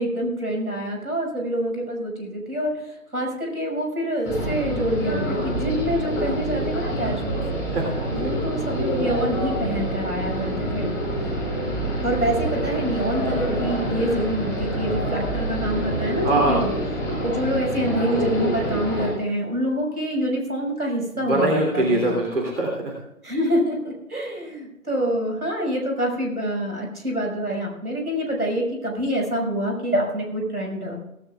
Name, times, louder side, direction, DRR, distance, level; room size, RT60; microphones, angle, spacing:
voice 1, 0.0-7.4 8.1-10.9 12.0-16.7 17.2-22.2 23.2-31.0, equal, 90° right, 0 dB, 5.9 m, -26 dB
sound 1, 4.2-19.1, right 1 dB, 5° left, 4.6 m, -26 dB
voice 2, 7.7-8.5 16.2-16.7 17.0-17.2 21.2-22.9, right 1 dB, 55° right, 0 dB, 3.3 m, -23 dB
17.5 x 16.5 x 2.4 m, 0.88 s
figure-of-eight pair, 150°, 43 cm